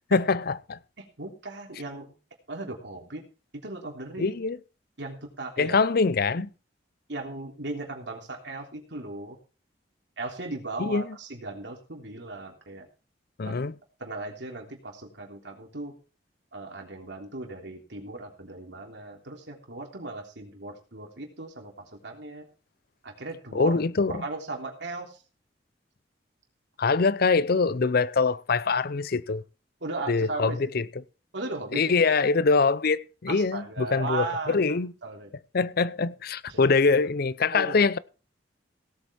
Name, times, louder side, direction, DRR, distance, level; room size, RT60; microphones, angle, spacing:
voice 1, 0.1-0.8 4.2-4.6 5.6-6.5 10.8-11.0 13.4-13.7 23.5-24.2 26.8-29.4 30.1-30.8 31.7-34.9 35.5-38.0, left 4 dB, 55° left, 0.6 m, -24 dB
voice 2, 1.0-2.2 2.5-3.2 3.6-4.4 5.0-5.8 7.1-9.4 10.2-12.9 13.4-13.5 14.0-15.9 16.5-22.5 23.0-23.7 24.1-25.2 29.8-30.7 31.3-31.9 33.3-35.3 36.5-36.7 37.5-37.8, right 2 dB, 65° right, 3.2 m, -37 dB
17.5 x 8.0 x 4.3 m
head